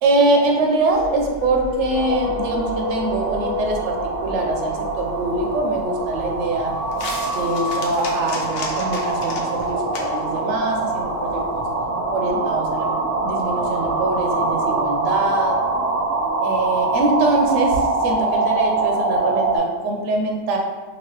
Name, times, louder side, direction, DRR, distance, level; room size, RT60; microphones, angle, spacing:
voice 1, 0.0-6.7 7.4-11.6 12.1-12.9 13.2-15.6 16.4-20.6, right 2 dB, 90° right, 2 dB, 0.9 m, -23 dB
sound 1, 0.8-8.4, left 5 dB, 90° left, 0.9 m, -32 dB
sound 2, 1.9-19.6, right 3 dB, 40° right, 0.7 m, -24 dB
sound 3, 4.9-11.7, left 3 dB, 65° left, 0.7 m, -37 dB
2.9 x 2.7 x 3.0 m, 1.3 s
omnidirectional pair, 1.2 m